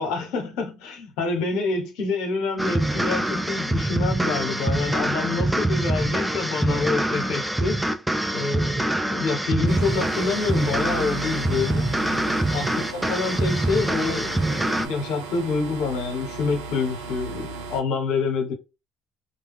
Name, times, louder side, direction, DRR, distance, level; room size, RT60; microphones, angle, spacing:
voice 1, 0.0-7.8 8.3-11.9 12.5-18.5, left 4 dB, 70° left, 0.9 m, -27 dB
sound 1, 2.6-14.9, right 1 dB, 10° right, 0.5 m, -25 dB
sound 2, 9.7-17.8, right 3 dB, 85° right, 0.5 m, -36 dB
2.2 x 2.1 x 3.5 m
hypercardioid pair, 55°, 0 cm